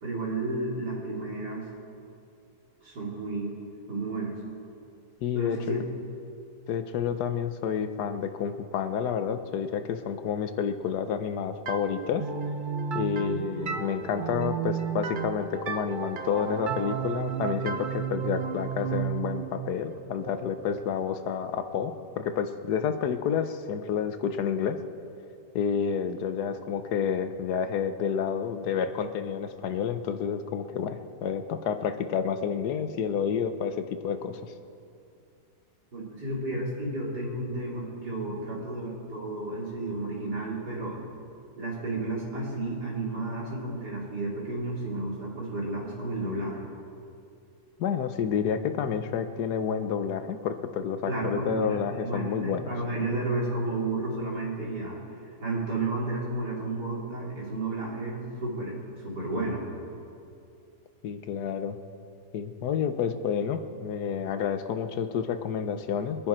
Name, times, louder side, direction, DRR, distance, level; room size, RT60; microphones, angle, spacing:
voice 1, 0.0-1.7 2.8-3.5 3.9-4.4 5.3-5.8 35.9-41.0 41.6-46.7 51.1-58.8 59.0-59.6, right 2 dB, 85° right, -4 dB, 3.4 m, -32 dB
voice 2, 5.2-5.8 6.7-12.2 12.9-24.8 25.5-34.5 47.8-52.7 61.0-61.8 62.3-66.3, left 7 dB, 80° left, 9 dB, 1.4 m, -29 dB
sound 1, 11.7-21.2, right 7 dB, 60° right, 0.5 m, -33 dB
22.5 x 10.5 x 4.4 m, 2.5 s
omnidirectional pair, 1.7 m